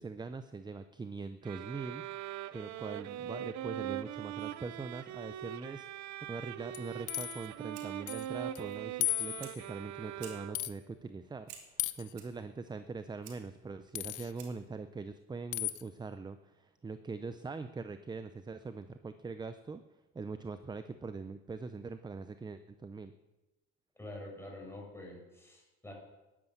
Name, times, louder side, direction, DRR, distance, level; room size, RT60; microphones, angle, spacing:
voice 1, 0.0-19.8 20.1-23.1, right 4 dB, 15° right, 11 dB, 0.6 m, -42 dB
sound 1, 1.4-10.9, right 12 dB, 55° right, 0.7 m, -42 dB
sound 2, 6.7-7.5 8.1-8.3 8.5-8.6 9.0-9.7 10.5-10.7 11.8-12.1 13.9-14.3 15.5-15.8, left 16 dB, 65° left, 0.9 m, -35 dB
Fire, 7.6-14.8, right 8 dB, 75° right, 2.9 m, -56 dB
voice 2, 24.0-25.9, left 1 dB, 5° left, -1 dB, 6.2 m, -47 dB
12.0 x 9.8 x 9.4 m, 1.1 s
cardioid pair, 120°, 33 cm